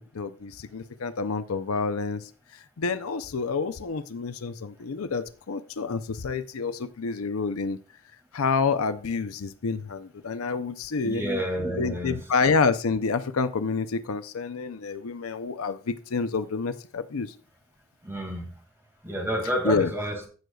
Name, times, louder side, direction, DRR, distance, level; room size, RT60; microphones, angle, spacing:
voice 1, 0.0-2.3 2.8-7.8 8.3-11.3 11.8-17.3 19.6-19.9, left 4 dB, 75° left, 0.6 m, -28 dB
voice 2, 11.0-12.1 18.0-18.4 19.0-20.1, equal, 10° right, 2.2 m, -29 dB
15.5 x 6.3 x 2.3 m
head